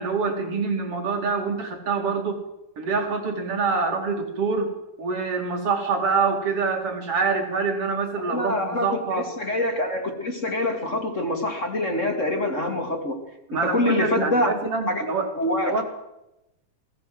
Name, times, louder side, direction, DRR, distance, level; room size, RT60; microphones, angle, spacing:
voice 1, 0.0-2.4 2.8-4.7 5.0-9.3 13.5-15.3 15.7-15.8, right 4 dB, 40° right, 3 dB, 3.0 m, -25 dB
voice 2, 8.2-13.2 13.5-14.5 14.9-15.0 15.3-15.8, left 1 dB, 25° left, 4 dB, 2.0 m, -25 dB
21.5 x 16.0 x 7.8 m, 0.91 s
omnidirectional pair, 4.4 m